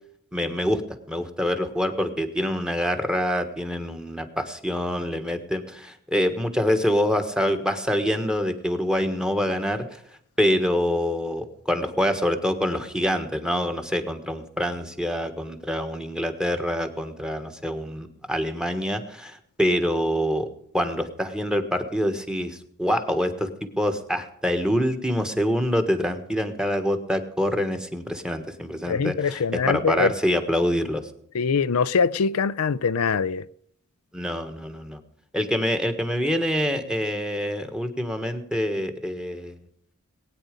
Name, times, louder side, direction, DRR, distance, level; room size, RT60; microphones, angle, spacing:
voice 1, 0.3-10.0 10.4-20.5 20.7-23.5 23.8-29.4 29.7-31.1 34.1-35.0 35.3-39.6, equal, 5° right, 1.4 m, -26 dB
voice 2, 28.9-30.1 31.3-33.5, left 5 dB, 90° left, 0.5 m, -23 dB
20.0 x 9.5 x 5.2 m
head